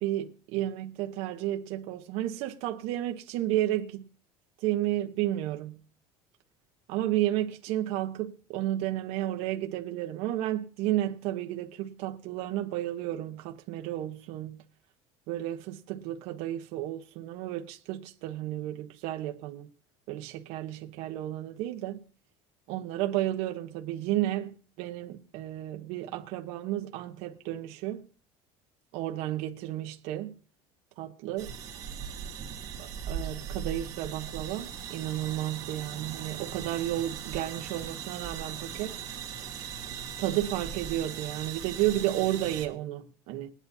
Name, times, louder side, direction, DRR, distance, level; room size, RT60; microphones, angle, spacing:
voice 1, 0.0-4.1 4.6-5.7 6.9-14.6 15.3-19.7 20.1-22.0 22.7-28.0 28.9-30.3 31.0-31.5 32.8-39.0 40.2-43.5, right 14 dB, 60° right, 1.1 m, -32 dB
sound 1, 31.4-42.7, right 7 dB, 30° right, 2.1 m, -39 dB
20.5 x 10.5 x 2.8 m
cardioid pair, 180°, 12 cm